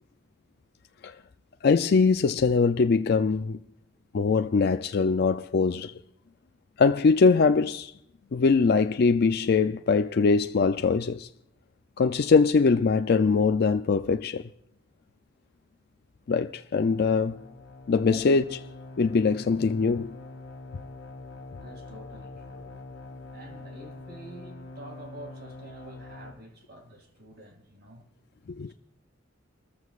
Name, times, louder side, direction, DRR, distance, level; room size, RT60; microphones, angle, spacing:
voice 1, 1.6-3.6 4.1-5.9 6.8-7.9 8.3-11.3 12.0-14.5 16.3-17.4 17.9-18.4 19.0-20.2 28.5-28.7, left 4 dB, 55° left, 0.4 m, -22 dB
sound 1, 16.9-26.3, left 3 dB, 85° left, 1.6 m, -44 dB
voice 2, 18.0-18.3 21.6-22.8 23.3-28.1 28.7-28.8, right 1 dB, 55° right, 2.4 m, -47 dB
29.5 x 14.0 x 2.4 m
head